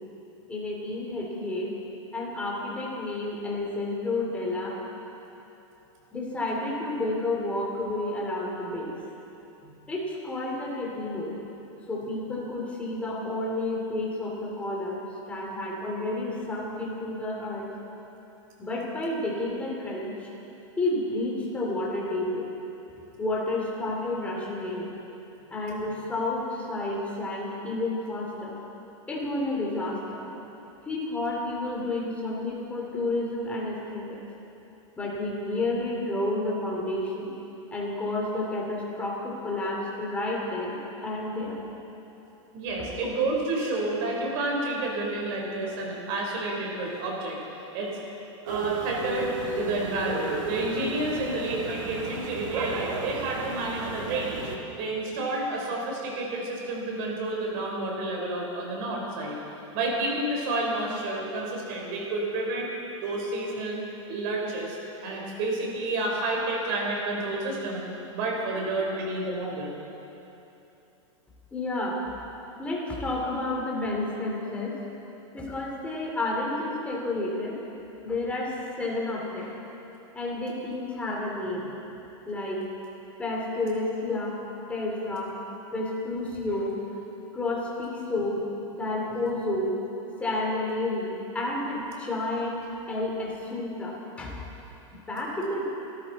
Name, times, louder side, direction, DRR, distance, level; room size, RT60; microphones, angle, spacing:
voice 1, 0.5-1.7 2.1-4.8 6.1-8.9 9.9-11.4 11.9-17.7 18.6-20.3 20.8-22.5 23.2-24.9 25.5-28.6 29.1-30.2 30.8-34.2 35.0-37.3 37.7-41.7 71.5-72.0 72.6-74.8 75.3-77.6 78.0-79.6 80.1-81.7 82.3-82.6 83.2-84.4 84.7-85.4 85.7-86.8 87.3-88.4 88.7-89.8 90.2-94.4 95.1-95.6, left 2 dB, 10° left, -3 dB, 2.8 m, -30 dB
voice 2, 42.5-47.4 47.7-48.0 48.4-54.4 54.8-59.4 59.7-62.7 63.0-63.8 64.1-64.8 65.0-67.8 68.1-69.7, right 2 dB, 40° right, -1 dB, 4.1 m, -30 dB
sound 1, 48.5-54.6, right 4 dB, 80° right, 2.0 m, -34 dB
25.0 x 13.5 x 4.1 m, 3.0 s
supercardioid pair, 165°, 16 cm